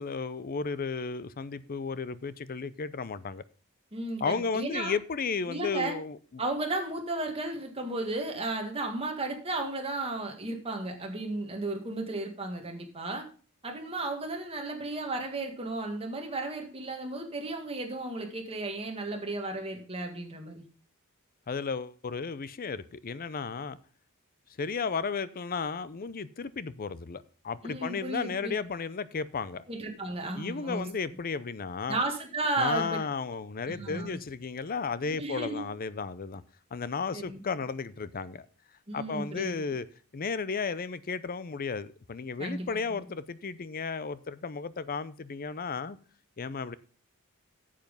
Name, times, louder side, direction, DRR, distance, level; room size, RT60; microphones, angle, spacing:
voice 1, 0.0-3.4 4.2-6.4 21.5-23.8 24.6-29.6 30.3-32.0 32.6-36.4 36.7-38.5 38.9-39.9 40.1-46.0 46.4-46.8, left 5 dB, 40° left, 0.5 m, -34 dB
voice 2, 3.9-4.9 5.5-5.9 6.4-13.3 13.6-20.6 27.6-28.5 29.7-30.9 31.9-32.9 33.7-34.1 35.1-35.7 37.1-37.4 38.9-39.6 42.4-43.0, right 2 dB, 25° right, 1.9 m, -34 dB
9.1 x 7.5 x 5.4 m
head